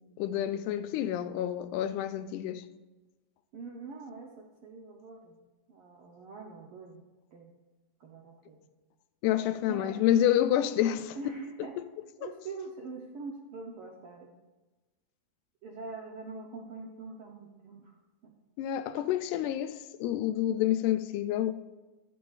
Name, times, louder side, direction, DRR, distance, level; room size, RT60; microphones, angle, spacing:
voice 1, 0.2-2.6 9.2-11.2 18.6-21.5, left 11 dB, 90° left, 2.1 m, -28 dB
voice 2, 3.5-5.4 5.7-7.0 7.3-7.5 8.0-8.6 9.7-10.1 11.1-11.7 12.2-14.3 15.6-18.0 18.2-18.3, right 3 dB, 75° right, 1.3 m, -44 dB
12.5 x 11.0 x 2.4 m
omnidirectional pair, 3.5 m